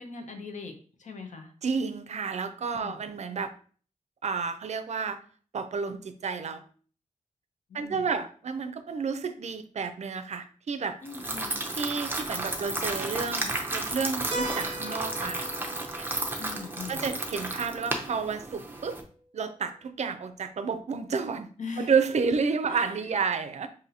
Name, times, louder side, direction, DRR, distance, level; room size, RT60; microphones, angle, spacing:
voice 1, 0.0-1.5 2.7-3.0 7.7-8.2 11.0-11.6 16.4-17.1 21.6-21.9 22.7-22.9, left 4 dB, 70° left, 5 dB, 0.7 m, -41 dB
voice 2, 1.6-3.5 4.2-5.2 5.5-6.6 7.7-11.0 11.7-15.5 15.8-16.1 16.9-19.0 19.3-21.5 21.8-23.7, right 5 dB, 60° right, 10 dB, 0.4 m, -31 dB
sound 1, 11.1-19.0, right 2 dB, 15° right, 0.6 m, -33 dB
Keyboard (musical), 14.3-18.8, right 1 dB, 40° right, 0.9 m, -40 dB
5.6 x 2.6 x 2.7 m, 0.43 s
wide cardioid pair, 150°, 13 cm